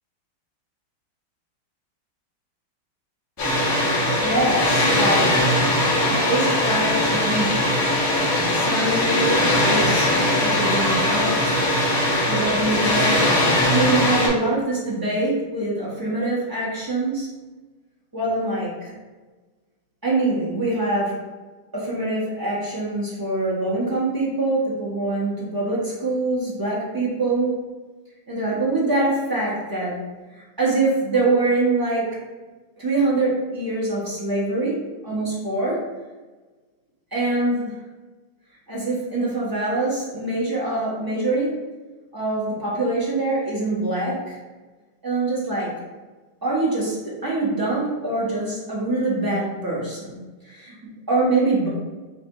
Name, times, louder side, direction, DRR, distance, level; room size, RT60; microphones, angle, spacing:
Water, 3.4-14.3, left 1 dB, 65° left, 1.9 m, -20 dB
voice 1, 4.0-5.5 6.1-7.6 8.5-10.1 10.4-11.6 12.2-17.3 18.1-18.9 20.0-21.2 21.7-27.6 28.3-30.0 30.3-32.2 32.8-35.8 37.1-37.8 38.7-41.7 42.1-44.4 45.0-45.7 46.4-50.2 50.4-50.7 51.1-51.7, right 2 dB, 25° right, -7 dB, 0.5 m, -24 dB
5.9 x 2.4 x 3.0 m, 1.3 s
omnidirectional pair, 2.3 m